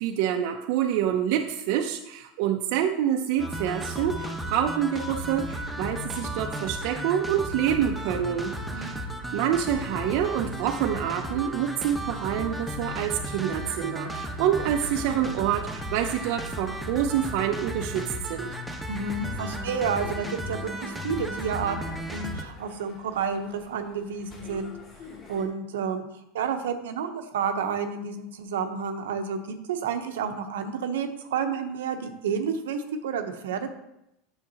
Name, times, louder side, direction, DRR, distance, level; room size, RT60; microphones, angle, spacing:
voice 1, 0.0-9.0 9.3-18.5, right 10 dB, 65° right, 3 dB, 0.6 m, -27 dB
sound 1, 3.4-22.4, equal, 5° right, 1.1 m, -34 dB
voice 2, 18.9-24.7 25.3-26.0 26.3-33.7, right 6 dB, 85° right, 6 dB, 0.9 m, -30 dB
sound 2, 19.3-25.5, left 4 dB, 40° left, 2.3 m, -47 dB
8.8 x 6.5 x 2.9 m, 0.84 s
supercardioid pair, 110°, 0 cm